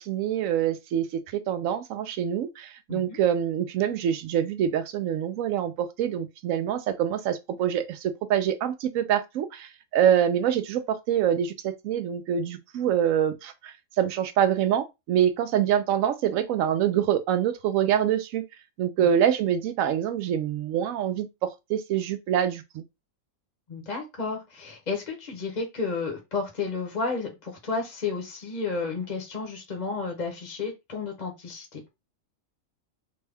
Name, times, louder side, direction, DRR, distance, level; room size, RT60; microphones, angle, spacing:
voice 1, 0.0-18.4 18.8-22.8, right 9 dB, 75° right, 1.0 m, -25 dB
voice 2, 2.9-3.2 19.0-19.1 23.7-31.8, left 4 dB, 35° left, 0.8 m, -32 dB
3.4 x 2.2 x 3.4 m
omnidirectional pair, 1.5 m